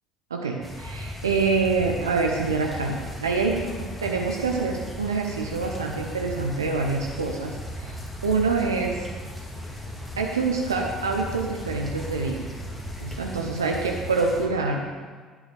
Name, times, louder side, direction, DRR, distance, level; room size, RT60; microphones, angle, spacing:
voice 1, 0.3-7.9 8.2-9.1 10.2-12.4 13.0-14.8, right 4 dB, 85° right, 1 dB, 0.8 m, -26 dB
sound 1, 0.6-14.5, equal, 5° left, 2.0 m, -37 dB
sound 2, 2.4-13.1, left 2 dB, 30° left, 2.1 m, -46 dB
11.0 x 9.8 x 3.4 m, 1.5 s
figure-of-eight pair, 55°, 2 cm